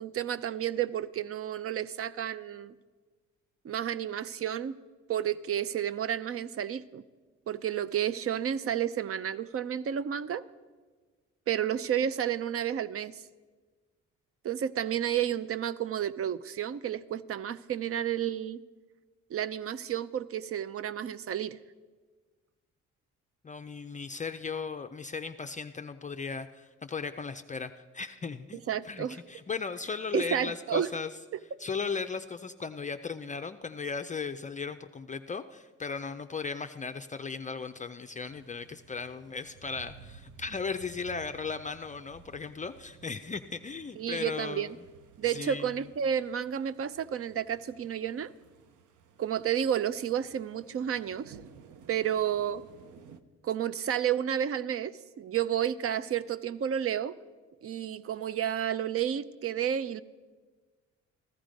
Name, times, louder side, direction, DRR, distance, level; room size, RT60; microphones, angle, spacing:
voice 1, 0.0-2.7 3.6-4.8 5.1-7.0 7.5-10.4 11.5-13.2 14.4-18.6 19.3-21.6 28.7-29.2 30.1-30.9 44.0-44.8 45.2-48.3 49.2-51.4 51.9-52.6 53.4-54.9 55.2-57.1 57.6-60.0, right 9 dB, 50° right, 16 dB, 0.5 m, -31 dB
voice 2, 23.4-31.1 31.6-44.7 45.2-45.8, left 5 dB, 25° left, 8 dB, 0.5 m, -37 dB
sound 1, 38.2-53.2, right 7 dB, 75° right, 0.8 m, -55 dB
15.0 x 12.5 x 5.1 m, 1.4 s
cardioid pair, 90°, 30 cm